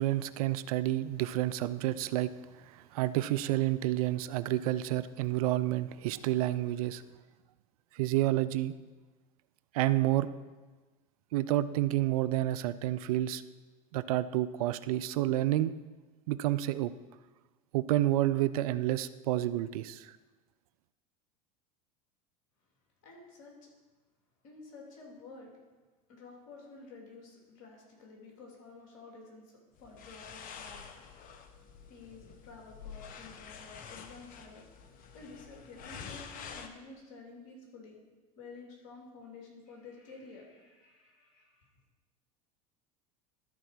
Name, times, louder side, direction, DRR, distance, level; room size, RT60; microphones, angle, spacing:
voice 1, 0.0-2.3 2.6-7.0 7.9-8.7 9.7-10.3 11.3-13.4 13.9-15.7 16.3-16.9 17.7-20.1, right 15 dB, 75° right, 15 dB, 0.5 m, -29 dB
voice 2, 23.0-23.6 24.4-25.5 26.1-30.8 31.9-34.7 35.1-38.0 38.4-41.7, left 3 dB, 65° left, -1 dB, 3.0 m, -51 dB
sound 1, 29.8-36.7, left 6 dB, 45° left, 1.0 m, -48 dB
13.0 x 4.5 x 5.9 m, 1.3 s
hypercardioid pair, 85°, 19 cm